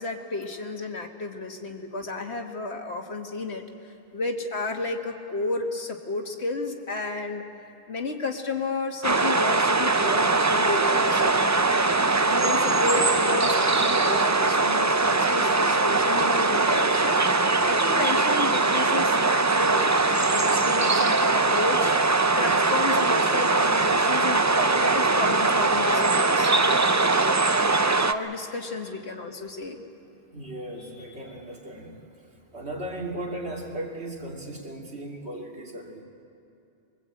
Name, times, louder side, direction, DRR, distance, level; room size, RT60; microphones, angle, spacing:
voice 1, 0.0-7.4 7.9-11.8 12.2-26.5 28.0-29.8, left 3 dB, 80° left, 3 dB, 2.1 m, -32 dB
sound 1, 9.0-28.1, right 3 dB, 25° right, 0.4 m, -21 dB
voice 2, 20.7-21.4 30.3-32.0 32.5-36.0, right 1 dB, 80° right, -1 dB, 3.3 m, -37 dB
23.5 x 22.0 x 8.6 m, 2.6 s
omnidirectional pair, 1.1 m